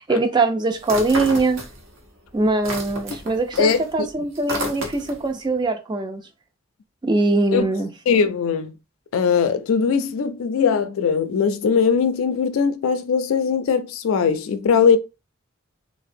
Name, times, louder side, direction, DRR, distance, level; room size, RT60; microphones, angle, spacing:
voice 1, 0.1-1.6 2.3-6.2 7.0-7.9, right 2 dB, 20° right, 0.3 m, -22 dB
sound 1, 0.8-2.1 2.4-5.3, equal, 75° right, 0.7 m, -31 dB
voice 2, 3.6-4.1 7.5-7.7 8.1-8.7 9.1-15.0, left 6 dB, 85° left, 0.4 m, -20 dB
2.6 x 2.0 x 2.5 m
head